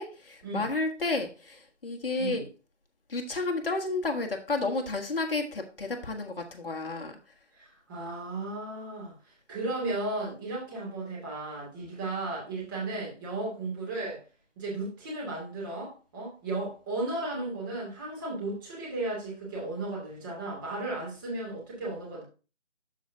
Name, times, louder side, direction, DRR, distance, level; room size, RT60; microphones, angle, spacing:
voice 1, 0.0-2.4 3.1-7.1, left 3 dB, 50° left, 3 dB, 1.4 m, -31 dB
voice 2, 7.5-9.1 9.5-14.2 14.6-22.2, right 2 dB, 15° right, -4 dB, 2.5 m, -35 dB
12.5 x 4.6 x 2.8 m, 0.34 s
figure-of-eight pair, 160°, 36 cm